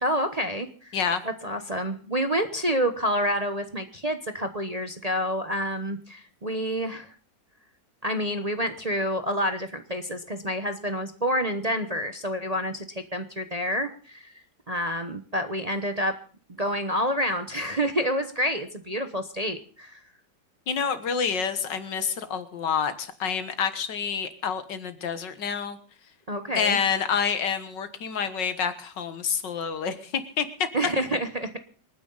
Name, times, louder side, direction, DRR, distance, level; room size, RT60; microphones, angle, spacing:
voice 1, 0.0-1.0 1.2-7.1 8.0-14.3 14.7-16.2 16.6-20.0 26.3-26.8 30.7-31.5, equal, 25° right, 7 dB, 0.9 m, -28 dB
voice 2, 20.7-25.8 26.6-30.5, left 6 dB, 75° left, 10 dB, 2.0 m, -28 dB
27.0 x 9.6 x 4.0 m, 0.42 s
omnidirectional pair, 1.9 m